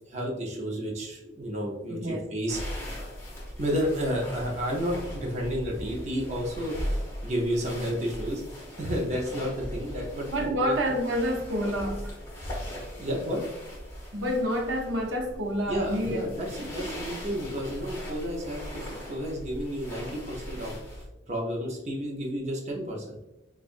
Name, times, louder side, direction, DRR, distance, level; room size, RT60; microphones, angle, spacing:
voice 1, 0.0-2.6 3.5-10.8 13.0-13.4 15.7-20.8 21.3-23.2, equal, 35° right, -2 dB, 0.7 m, -31 dB
voice 2, 1.9-2.3 10.3-12.1 14.1-16.3 16.6-16.9, equal, 85° right, 1 dB, 0.8 m, -28 dB
sound 1, 2.5-21.0, equal, 15° left, 1.0 m, -39 dB
5.4 x 2.4 x 2.5 m, 1.0 s
head